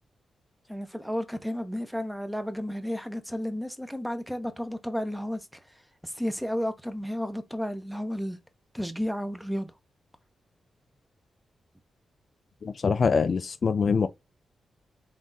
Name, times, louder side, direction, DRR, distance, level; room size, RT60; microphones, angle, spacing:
voice 1, 0.7-5.6 6.0-8.4 8.7-9.7, equal, ahead, 0.8 m, -32 dB
voice 2, 12.6-14.1, left 5 dB, 55° left, 0.3 m, -24 dB
3.6 x 2.4 x 3.9 m
supercardioid pair, 50°, 0 cm